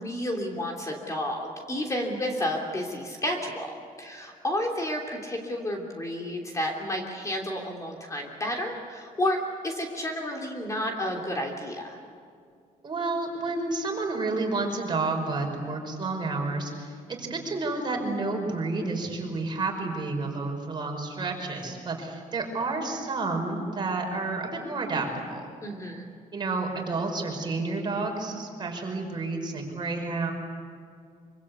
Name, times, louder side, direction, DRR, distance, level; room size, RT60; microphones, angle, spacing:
voice 1, 0.0-12.0 25.6-26.1, left 1 dB, 20° left, 1 dB, 3.2 m, -31 dB
voice 2, 12.8-25.5 26.3-30.3, right 3 dB, 30° right, 1 dB, 5.3 m, -30 dB
25.5 x 25.0 x 8.4 m, 2.2 s
cardioid pair, 145°, 14 cm